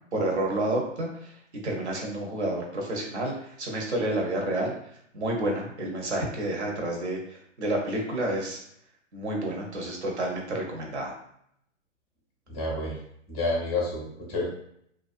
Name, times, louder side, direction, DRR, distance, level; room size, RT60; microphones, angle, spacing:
voice 1, 0.1-1.3 1.6-4.7 5.1-7.2 7.6-8.6 9.1-11.1, right 1 dB, 60° right, 0 dB, 0.8 m, -29 dB
voice 2, 12.5-13.0 13.3-14.5, left 2 dB, 15° left, -3 dB, 0.5 m, -29 dB
2.4 x 2.2 x 2.4 m, 0.71 s
figure-of-eight pair, 115°, 38 cm